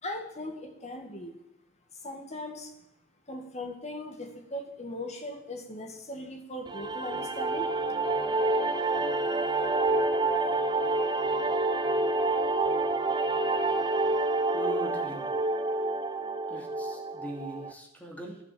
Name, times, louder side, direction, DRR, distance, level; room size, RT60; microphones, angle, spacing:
voice 1, 0.0-1.3 2.0-2.7 3.3-7.7, left 1 dB, 30° left, 4 dB, 2.0 m, -39 dB
sound 1, 6.7-17.7, right 2 dB, 20° right, 0.7 m, -28 dB
voice 2, 14.5-15.3 16.5-18.4, right 1 dB, 5° left, 0 dB, 2.7 m, -40 dB
12.0 x 10.5 x 7.7 m, 0.85 s
head